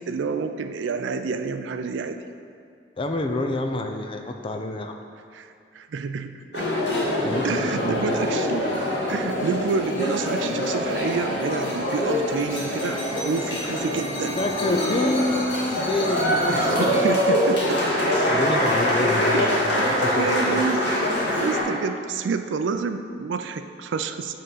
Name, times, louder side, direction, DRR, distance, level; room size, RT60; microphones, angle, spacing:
voice 1, 0.1-2.2 5.3-6.7 7.4-8.7 9.1-14.4 16.5-18.2 19.3-19.7 20.2-20.8 21.4-24.3, right 5 dB, 75° right, 9 dB, 0.4 m, -29 dB
voice 2, 3.0-5.0 7.2-8.3 14.3-17.0 18.3-20.7, left 2 dB, 30° left, 5 dB, 0.4 m, -28 dB
sound 1, 6.5-21.6, equal, 65° left, 1.5 m, -24 dB
7.8 x 3.7 x 5.5 m, 2.3 s
head